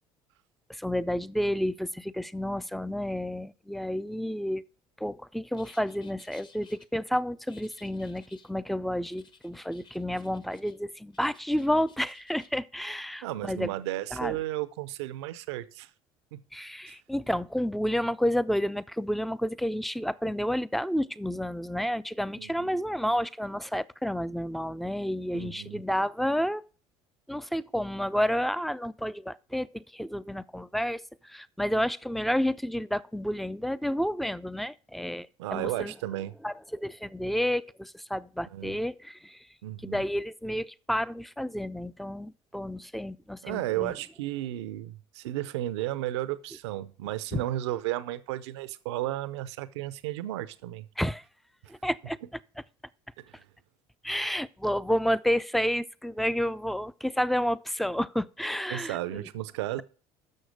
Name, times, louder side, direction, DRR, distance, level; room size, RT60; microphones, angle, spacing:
voice 1, 0.7-4.6 5.0-13.7 14.1-14.4 16.5-26.6 27.3-35.9 36.4-39.4 39.8-43.9 47.3-47.4 51.0-51.2 51.7-52.2 54.0-59.3, equal, ahead, 0.4 m, -30 dB
sound 1, 5.5-6.8 7.5-8.5 9.1-10.8 11.1-12.5, left 5 dB, 35° left, 1.0 m, -57 dB
voice 2, 13.2-15.9 16.3-16.4 16.9-17.0 22.4-22.8 25.3-25.8 35.4-36.3 38.5-38.8 39.6-40.0 43.4-50.9 53.2-53.4 58.7-59.8, right 15 dB, 85° right, 0.6 m, -33 dB
6.5 x 6.4 x 6.3 m
supercardioid pair, 80°, 14 cm